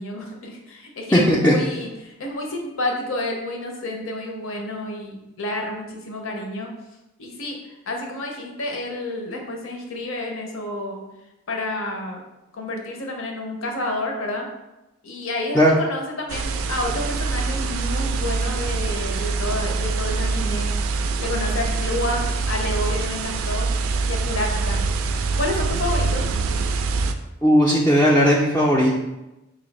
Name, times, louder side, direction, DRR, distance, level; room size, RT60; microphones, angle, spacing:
voice 1, 0.0-6.7 7.2-11.0 11.5-12.2 12.5-14.5 15.0-20.7 21.2-23.7 24.0-24.8 25.4-26.3, left 1 dB, 70° left, 2 dB, 0.7 m, -29 dB
voice 2, 1.1-1.5 15.5-15.7 27.4-29.0, equal, 10° left, -5 dB, 0.3 m, -16 dB
sound 1, 16.3-27.1, right 3 dB, 80° right, 0.3 m, -24 dB
3.1 x 2.6 x 4.1 m, 0.98 s
head